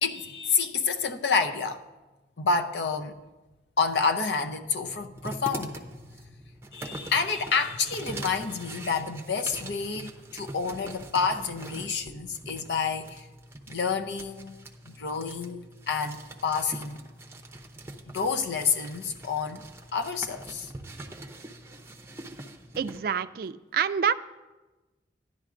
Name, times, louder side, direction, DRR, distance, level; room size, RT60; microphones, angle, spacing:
voice 1, 0.0-1.8 2.4-3.2 3.8-5.7 6.7-13.3 13.7-17.0 18.1-19.6 19.9-20.7, left 5 dB, 75° left, 0.7 m, -29 dB
sound 1, 5.1-23.0, right 2 dB, 15° right, 0.6 m, -43 dB
voice 2, 22.8-24.1, right 7 dB, 55° right, 0.3 m, -27 dB
14.0 x 10.5 x 2.5 m
head